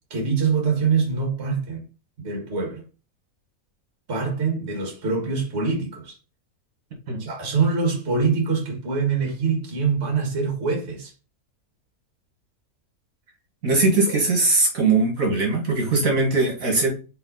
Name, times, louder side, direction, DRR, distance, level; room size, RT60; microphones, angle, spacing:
voice 1, 0.1-1.8 2.2-2.8 4.1-6.2 7.2-11.1 13.7-13.8 14.1-14.2, right 5 dB, 45° right, 2.0 m, -24 dB
voice 2, 13.6-16.9, right 3 dB, 60° right, 2.2 m, -20 dB
5.6 x 4.5 x 4.1 m
omnidirectional pair, 1.6 m